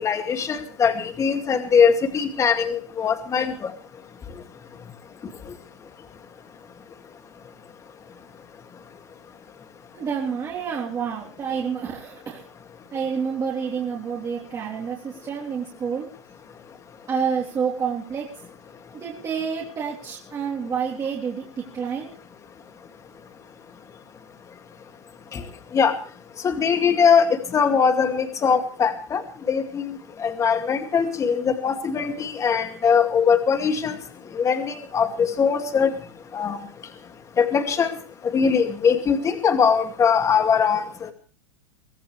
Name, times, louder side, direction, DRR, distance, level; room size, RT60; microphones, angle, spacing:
voice 1, 0.0-3.7 25.3-25.4 25.7-25.9 26.4-27.3 27.5-29.2 29.5-34.0 34.4-35.9 36.3-36.6 37.4-37.9 38.3-41.1, left 6 dB, 20° left, 7 dB, 2.3 m, -21 dB
voice 2, 9.9-12.4 12.9-16.1 17.1-18.3 18.9-22.1, right 6 dB, 20° right, -4 dB, 3.6 m, -28 dB
23.5 x 16.0 x 3.3 m, 0.39 s
supercardioid pair, 140°, 15 cm